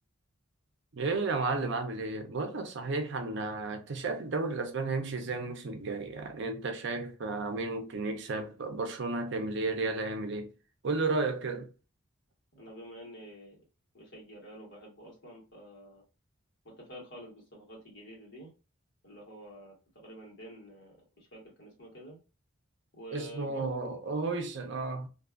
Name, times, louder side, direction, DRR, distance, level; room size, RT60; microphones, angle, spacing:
voice 1, 0.9-10.5 10.8-11.7 23.1-25.1, right 3 dB, 55° right, 0.5 m, -33 dB
voice 2, 12.5-13.6 13.9-16.0 16.6-18.5 19.0-22.2 22.9-24.0, equal, 60° left, 1.4 m, -48 dB
2.6 x 2.3 x 2.4 m
head